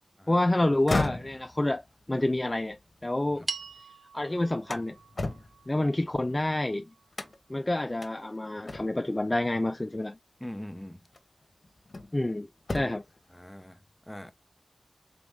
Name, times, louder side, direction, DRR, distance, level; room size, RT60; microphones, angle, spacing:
voice 1, 0.3-3.5 4.1-5.0 5.7-6.9 7.5-10.2 12.1-13.0, left 1 dB, 30° left, 0.3 m, -28 dB
sound 1, 0.8-3.8 4.2-6.6 7.1-7.6 8.0-8.1 8.7-9.2 10.4-10.6 11.1-12.3 12.6-13.2, left 2 dB, 55° left, 1.0 m, -35 dB
sound 2, 3.5-7.9, right 4 dB, 70° right, 0.7 m, -43 dB
voice 2, 10.4-11.0 13.3-13.8 14.1-14.3, left 1 dB, 10° left, 0.9 m, -42 dB
3.6 x 3.4 x 3.5 m
wide cardioid pair, 50°, 0 cm